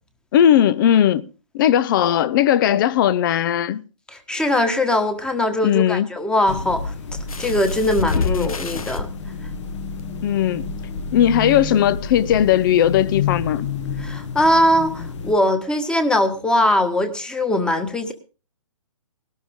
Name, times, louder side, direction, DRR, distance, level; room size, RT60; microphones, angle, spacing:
voice 1, 0.3-1.2 1.5-3.8 5.6-6.1 8.2-8.5 10.2-10.6 11.1-13.7, left 10 dB, 35° left, 0.8 m, -18 dB
voice 2, 4.1-6.9 7.4-9.1 14.0-18.1, left 1 dB, 5° left, 1.5 m, -21 dB
sound 1, 6.5-15.4, left 5 dB, 55° left, 1.8 m, -30 dB
sound 2, 7.3-9.0 10.0-10.1 10.5-10.6, left 4 dB, 80° left, 1.4 m, -27 dB
18.5 x 12.5 x 3.7 m
hypercardioid pair, 145°, 18 cm